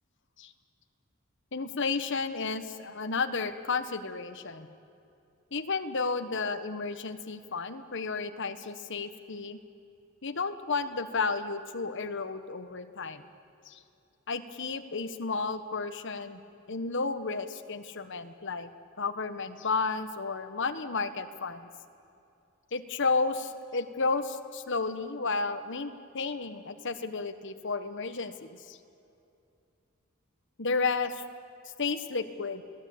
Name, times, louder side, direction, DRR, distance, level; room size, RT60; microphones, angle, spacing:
voice 1, 1.5-4.7 5.5-9.6 10.2-13.2 13.7-13.8 14.3-16.4 16.7-18.7 19.0-21.7 22.7-28.8 30.6-31.2 31.8-32.6, left 4 dB, 60° left, 9 dB, 1.5 m, -32 dB
29.0 x 19.0 x 8.7 m, 2.6 s
head